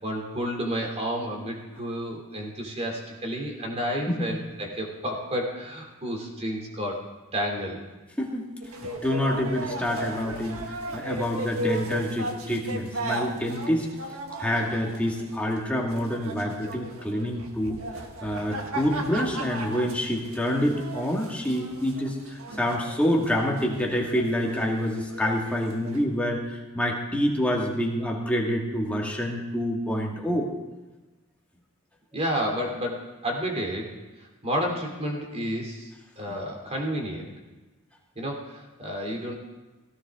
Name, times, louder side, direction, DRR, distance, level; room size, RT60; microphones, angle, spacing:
voice 1, 0.0-7.0 7.3-7.8 32.1-33.9 34.2-35.9 36.2-37.3 38.1-39.3, equal, 30° right, 1 dB, 2.9 m, -31 dB
sound 1, 8.6-26.0, right 1 dB, 80° right, 1.5 m, -36 dB
voice 2, 9.0-13.9 14.4-17.8 18.2-30.5, equal, 5° left, -2 dB, 2.0 m, -27 dB
17.0 x 15.5 x 3.7 m, 1.1 s
head